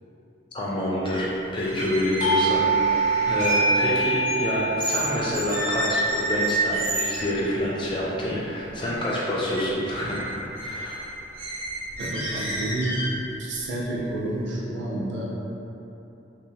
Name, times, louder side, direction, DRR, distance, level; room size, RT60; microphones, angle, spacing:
voice 1, 0.5-10.2 10.6-11.0, left 1 dB, 25° left, -6 dB, 0.3 m, -27 dB
sound 1, 1.0-1.2 1.5-5.1 5.3-7.3 7.8-7.9 8.3-8.7 9.0-9.6 9.9-13.3, right 1 dB, 30° right, 0.7 m, -30 dB
Doorbell, 2.2-7.5, right 3 dB, 80° left, 0.5 m, -25 dB
voice 2, 12.0-13.0 13.4-15.2, right 1 dB, 70° right, -5 dB, 0.5 m, -30 dB
2.8 x 2.0 x 2.6 m, 2.9 s
head